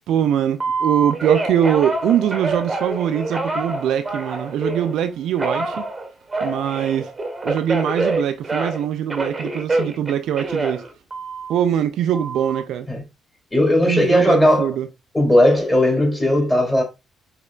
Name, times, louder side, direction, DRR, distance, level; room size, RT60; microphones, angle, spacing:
voice 1, 0.1-5.9 6.4-7.1 7.4-10.8 11.5-12.9 13.9-14.9, right 9 dB, 60° right, 0.3 m, -22 dB
Telephone, 0.6-4.9 5.4-8.8 9.1-11.6 12.1-12.6, right 2 dB, 25° right, 1.0 m, -26 dB
voice 2, 13.5-14.7 15.1-16.8, left 1 dB, 10° left, 2.1 m, -16 dB
4.9 x 2.8 x 2.2 m
figure-of-eight pair, 45°, 0 cm